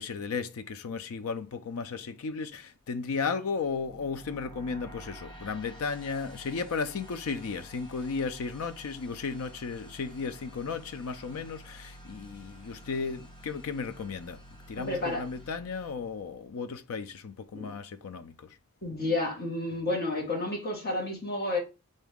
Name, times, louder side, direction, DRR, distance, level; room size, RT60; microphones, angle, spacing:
voice 1, 0.0-14.4 14.7-18.6, left 5 dB, 70° left, 0.4 m, -35 dB
sound 1, 3.5-16.6, equal, 20° left, 0.9 m, -50 dB
voice 2, 14.8-15.2 17.5-17.7 18.8-21.6, left 2 dB, 45° left, 1.5 m, -31 dB
3.9 x 2.7 x 3.5 m
head